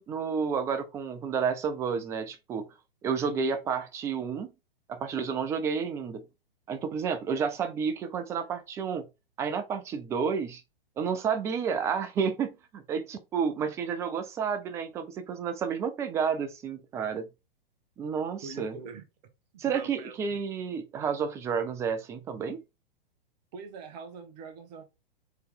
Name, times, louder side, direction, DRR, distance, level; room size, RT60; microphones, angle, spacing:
voice 1, 0.0-2.7 3.0-4.5 4.9-6.3 6.7-9.1 9.4-10.6 11.0-17.3 18.0-18.8 19.6-22.6, right 6 dB, 10° right, 0.3 m, -30 dB
voice 2, 18.4-19.0 19.6-20.4 23.5-24.8, right 5 dB, 45° right, 1.4 m, -43 dB
4.5 x 3.1 x 3.7 m
figure-of-eight pair, 110°, 30 cm